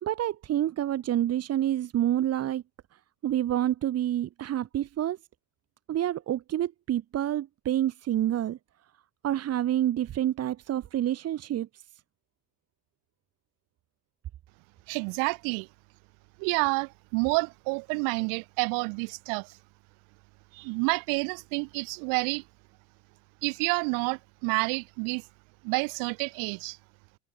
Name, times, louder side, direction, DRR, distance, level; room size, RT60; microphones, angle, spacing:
voice 1, 0.0-2.6 3.2-5.2 5.9-8.6 9.2-11.8, right 12 dB, 40° right, 2.8 m, -28 dB
voice 2, 14.9-15.7 16.4-19.5 20.5-22.4 23.4-25.2 25.6-26.8, right 36 dB, 60° right, 7.8 m, -29 dB
hypercardioid pair, 80°, 37 cm